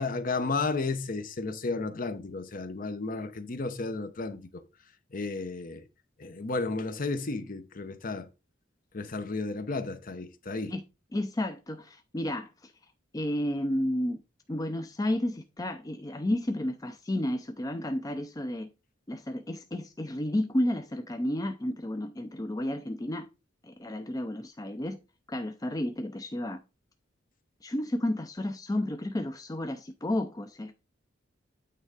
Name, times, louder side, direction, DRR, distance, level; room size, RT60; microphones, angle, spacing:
voice 1, 0.0-4.6 5.1-5.8 6.2-8.3 8.9-10.7, left 3 dB, 45° left, 0.8 m, -33 dB
voice 2, 11.1-12.7 13.1-14.2 14.5-18.7 19.1-23.3 23.6-25.0 25.3-26.6 27.6-30.7, left 1 dB, 20° left, 0.5 m, -32 dB
8.8 x 3.5 x 4.9 m
head